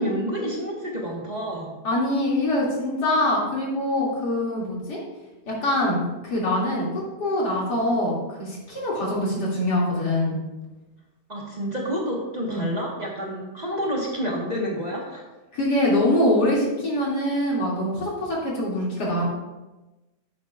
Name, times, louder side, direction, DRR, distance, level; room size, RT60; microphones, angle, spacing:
voice 1, 0.0-1.7 11.3-15.2, equal, 25° right, -3 dB, 1.4 m, -29 dB
voice 2, 1.8-5.0 5.5-10.4 12.5-12.7 15.5-19.3, left 1 dB, 75° left, -5 dB, 3.2 m, -24 dB
12.0 x 8.4 x 2.4 m, 1.1 s
omnidirectional pair, 1.8 m